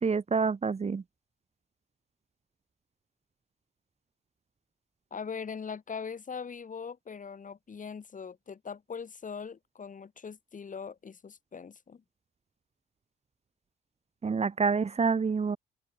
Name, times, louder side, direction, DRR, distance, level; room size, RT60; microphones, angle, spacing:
voice 1, 0.0-1.0 14.2-15.6, right 5 dB, 30° right, 1.8 m, -27 dB
voice 2, 5.1-12.0, left 6 dB, 40° left, 6.0 m, -41 dB
open air
cardioid pair, 90°, 20 cm